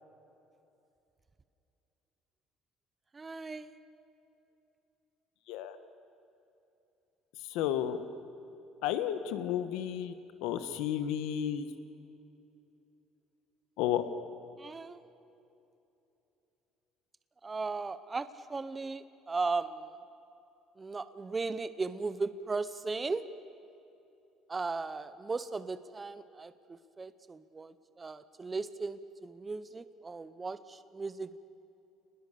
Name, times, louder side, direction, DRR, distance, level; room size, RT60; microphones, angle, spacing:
voice 1, 3.1-3.7 14.6-15.0 17.4-19.9 20.8-23.2 24.5-31.4, right 4 dB, 20° right, 12 dB, 0.7 m, -37 dB
voice 2, 7.5-8.0 8.8-10.1 10.4-11.7 13.8-14.0, left 10 dB, 90° left, 10 dB, 1.4 m, -32 dB
29.5 x 20.0 x 6.9 m, 2.8 s
cardioid pair, 140°, 0 cm